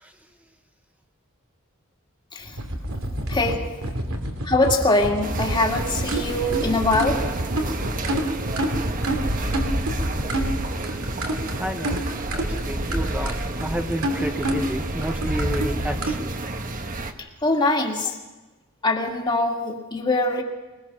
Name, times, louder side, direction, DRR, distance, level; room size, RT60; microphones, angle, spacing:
sound 1, 2.5-16.1, right 1 dB, 85° right, 2.7 m, -27 dB
voice 1, 3.3-3.6 4.4-7.2 17.4-18.1 18.8-20.4, left 2 dB, 20° left, 1 dB, 2.2 m, -22 dB
sound 2, 5.2-17.1, right 2 dB, 40° right, 1.2 m, -31 dB
voice 2, 11.6-16.3, right 1 dB, 5° right, 5 dB, 1.0 m, -31 dB
22.0 x 21.0 x 6.2 m, 1.2 s
head